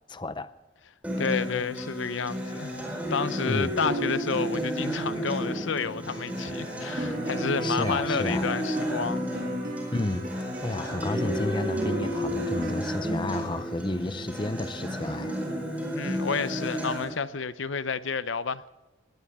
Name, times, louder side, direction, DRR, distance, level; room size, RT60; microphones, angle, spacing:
voice 1, 0.1-0.5 3.4-3.8 7.6-8.5 9.9-10.3 10.6-15.4, left 2 dB, 25° left, 0.5 m, -31 dB
Acoustic guitar, 1.0-17.0, equal, 5° right, 4.4 m, -32 dB
voice 2, 1.2-2.8 3.1-9.3 15.9-18.6, left 5 dB, 70° left, 0.7 m, -30 dB
sound 1, 5.2-12.7, right 1 dB, 45° right, 2.3 m, -39 dB
20.0 x 18.5 x 3.6 m
head